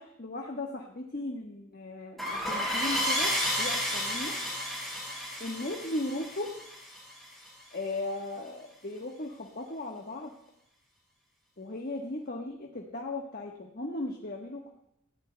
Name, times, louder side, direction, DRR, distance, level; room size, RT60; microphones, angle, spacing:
voice 1, 0.0-4.3 5.4-6.5 7.7-10.3 11.6-14.7, left 2 dB, 40° left, 1 dB, 1.2 m, -37 dB
sound 1, 2.2-7.5, equal, ahead, 4.3 m, -32 dB
20.0 x 14.5 x 2.2 m, 0.80 s
head